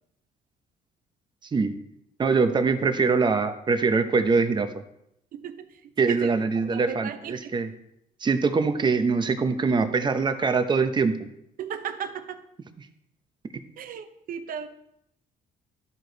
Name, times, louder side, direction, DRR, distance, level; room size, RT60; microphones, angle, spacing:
voice 1, 2.2-4.7 6.0-7.7 8.2-11.2, right 4 dB, 25° right, 8 dB, 0.8 m, -23 dB
voice 2, 5.3-7.3 11.6-12.4 13.8-14.7, right 8 dB, 55° right, 9 dB, 0.8 m, -36 dB
12.0 x 4.8 x 4.0 m, 0.78 s
cardioid pair, 110°, 17 cm